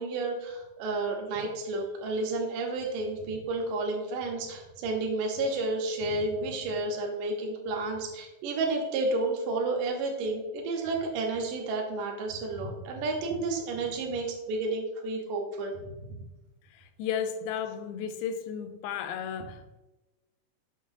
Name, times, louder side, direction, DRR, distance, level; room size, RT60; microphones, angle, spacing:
voice 1, 0.0-15.8, right 2 dB, 70° right, 2.5 m, -31 dB
voice 2, 16.7-19.8, left 8 dB, 90° left, 2.5 m, -34 dB
7.1 x 6.0 x 2.6 m
omnidirectional pair, 4.3 m